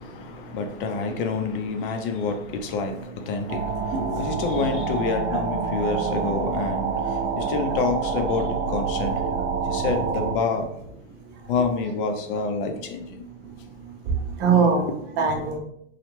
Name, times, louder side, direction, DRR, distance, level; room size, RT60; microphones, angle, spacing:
voice 1, 0.5-3.0 3.3-3.6 4.2-6.9 7.4-9.2 9.7-10.6 11.5-13.0 14.8-14.9, left 4 dB, 50° left, 6 dB, 0.6 m, -27 dB
sound 1, 3.5-10.3, right 5 dB, 75° right, 0.7 m, -27 dB
voice 2, 14.1-14.9 15.2-15.6, right 5 dB, 30° right, 2 dB, 0.7 m, -23 dB
3.1 x 2.3 x 3.0 m, 0.75 s
hypercardioid pair, 130°, 34 cm